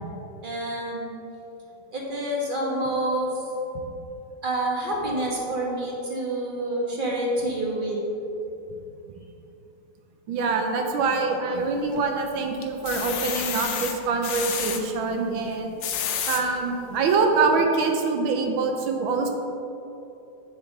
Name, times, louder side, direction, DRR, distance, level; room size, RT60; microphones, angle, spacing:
voice 1, 0.4-1.1 1.9-3.3 4.4-8.0, right 1 dB, 30° right, -3 dB, 1.0 m, -27 dB
voice 2, 10.3-15.7 16.3-19.3, right 4 dB, 70° right, 3 dB, 1.4 m, -24 dB
sound 1, 11.5-12.1 12.6-14.8 15.6-16.4 17.0-17.1 17.5-17.6, left 8 dB, 70° left, 1.3 m, -30 dB
7.6 x 6.9 x 4.0 m, 2.8 s
omnidirectional pair, 2.4 m